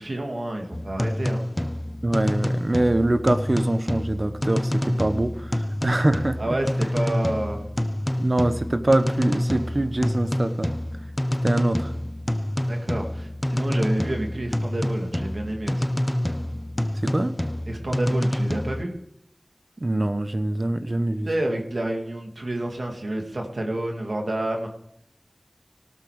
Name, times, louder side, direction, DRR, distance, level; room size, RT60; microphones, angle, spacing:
voice 1, 0.0-1.5 6.4-7.6 12.7-15.8 17.7-19.0 21.3-24.7, right 1 dB, 80° right, 2 dB, 2.1 m, -29 dB
sound 1, 0.7-18.9, left 1 dB, 20° left, 0.6 m, -27 dB
voice 2, 2.0-5.5 5.8-6.4 8.2-10.7 11.4-11.9 17.0-17.3 19.8-21.3, right 1 dB, 50° right, 10 dB, 1.0 m, -24 dB
18.0 x 8.4 x 4.8 m, 0.74 s
wide cardioid pair, 45°, 0 cm